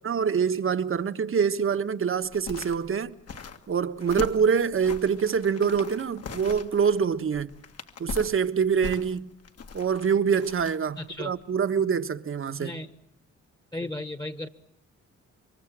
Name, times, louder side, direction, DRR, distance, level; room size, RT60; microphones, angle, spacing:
voice 1, 0.0-3.2 3.7-7.5 8.0-9.3 9.7-12.8, right 6 dB, 45° right, 1.4 m, -25 dB
sound 1, 2.2-11.1 11.4-11.5, left 5 dB, 55° left, 2.1 m, -40 dB
voice 2, 11.0-11.3 12.5-12.9 13.7-14.5, left 1 dB, 15° left, 1.5 m, -35 dB
27.5 x 24.5 x 7.5 m
cardioid pair, 105°, 29 cm